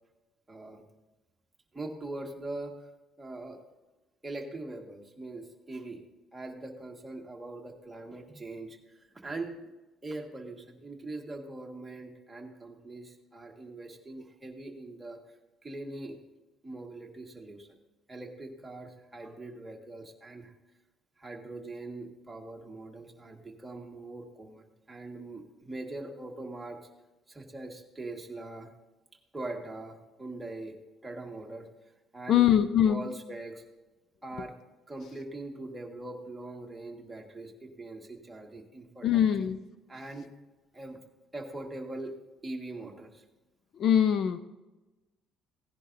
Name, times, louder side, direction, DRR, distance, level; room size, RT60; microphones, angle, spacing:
voice 1, 0.5-0.9 1.7-2.8 3.2-3.6 4.2-6.0 6.3-9.7 10.0-15.4 15.6-16.2 16.6-17.7 18.1-20.5 21.2-26.9 27.3-28.7 29.3-30.8 31.0-31.7 32.1-33.6 34.2-34.6 34.9-39.2 39.9-40.3 40.7-41.0 41.3-42.2 42.4-43.2, right 2 dB, 10° right, 0 dB, 1.7 m, -42 dB
voice 2, 32.3-33.0 39.0-39.6 43.7-44.4, left 10 dB, 45° left, 11 dB, 0.6 m, -23 dB
17.0 x 10.5 x 2.7 m, 1.1 s
cardioid pair, 145°, 0 cm